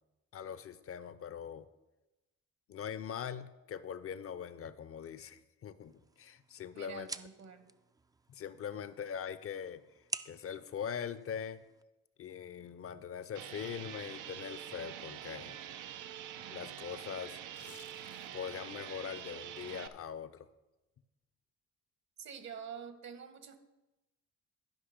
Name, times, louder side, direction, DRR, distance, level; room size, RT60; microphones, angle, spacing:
voice 1, 0.3-1.7 2.7-7.1 8.3-9.8 10.2-11.6 12.2-15.6 16.5-17.4 18.3-20.5, left 8 dB, 50° left, 15 dB, 0.6 m, -42 dB
sound 1, 5.8-11.8, right 3 dB, 15° right, 0.3 m, -49 dB
voice 2, 6.7-7.7 22.2-23.6, right 7 dB, 65° right, 9 dB, 1.3 m, -47 dB
sound 2, 13.3-19.9, right 10 dB, 85° right, 0.6 m, -46 dB
sound 3, 17.5-18.6 19.0-19.1, left 9 dB, 75° left, 0.9 m, -57 dB
12.0 x 5.4 x 5.1 m, 1.0 s
cardioid pair, 90°, 30 cm